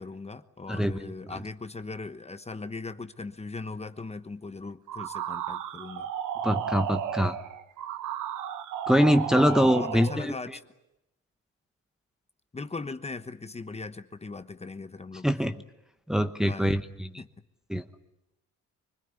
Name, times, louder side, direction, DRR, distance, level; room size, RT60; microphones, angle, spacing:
voice 1, 0.0-6.1 9.3-10.5 12.5-15.5 16.4-16.8 17.2-17.3, left 3 dB, 20° left, 10 dB, 1.1 m, -39 dB
voice 2, 0.7-1.4 6.4-7.4 8.9-10.4 15.2-15.6 16.1-17.2 17.7-17.8, equal, ahead, 7 dB, 1.0 m, -24 dB
sound 1, 4.9-10.3, right 9 dB, 85° right, 1.2 m, -34 dB
25.5 x 20.5 x 9.7 m, 0.90 s
cardioid pair, 90°, 30 cm